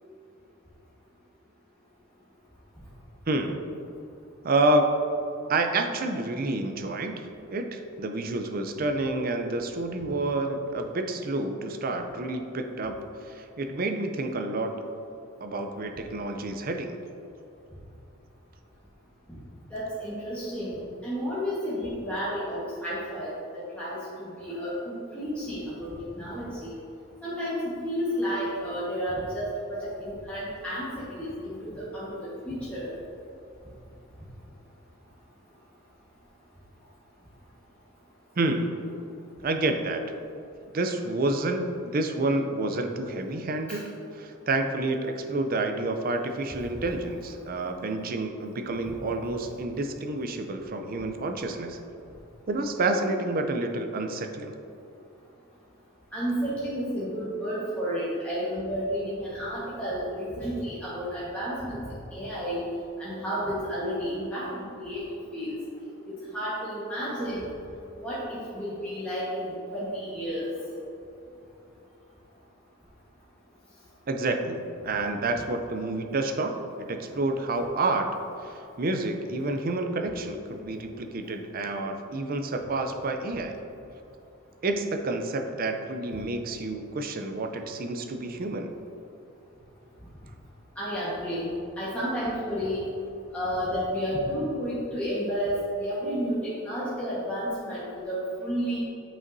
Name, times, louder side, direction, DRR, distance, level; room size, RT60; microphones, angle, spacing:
voice 1, 3.3-3.7 4.4-4.9 5.5-7.2 7.5-12.9 13.2-14.7 15.4-17.0 38.4-38.9 39.4-40.0 40.7-51.8 52.5-54.5 74.1-78.1 78.4-83.6 84.6-88.7, right 2 dB, 45° right, 5 dB, 0.5 m, -29 dB
voice 2, 19.7-20.8 21.0-26.7 27.2-32.9 43.7-43.8 48.9-49.0 56.1-61.8 62.1-62.6 63.0-65.5 66.1-67.4 68.0-70.5 90.8-91.5 91.8-92.8 93.3-98.9, equal, 5° left, -11 dB, 1.3 m, -31 dB
8.7 x 5.3 x 2.6 m, 2.8 s
head